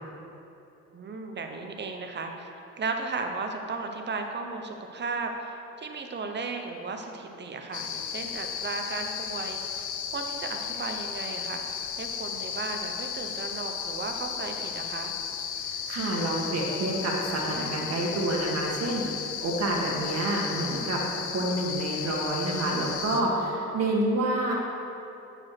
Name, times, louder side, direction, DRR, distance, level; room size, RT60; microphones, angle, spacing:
voice 1, 0.9-15.1 19.5-19.7, right 3 dB, 35° right, 4 dB, 1.0 m, -35 dB
sound 1, 7.7-23.2, left 7 dB, 80° left, 0.7 m, -34 dB
voice 2, 15.6-19.1 19.4-24.5, right 1 dB, 55° right, -3 dB, 2.0 m, -28 dB
8.6 x 5.0 x 6.0 m, 2.9 s
cardioid pair, 90°, 30 cm